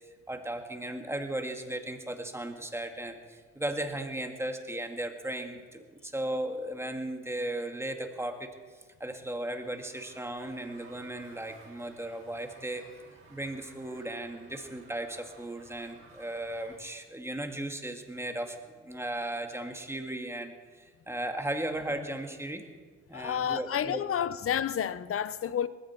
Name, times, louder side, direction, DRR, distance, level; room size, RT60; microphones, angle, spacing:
voice 1, 0.3-8.5 9.0-22.7 23.1-24.0, right 1 dB, 10° right, 1.9 m, -36 dB
sound 1, 9.6-16.8, right 2 dB, 45° right, 6.3 m, -56 dB
voice 2, 23.1-25.7, left 9 dB, 50° left, 0.7 m, -30 dB
20.0 x 15.5 x 4.5 m
cardioid pair, 90°, 30 cm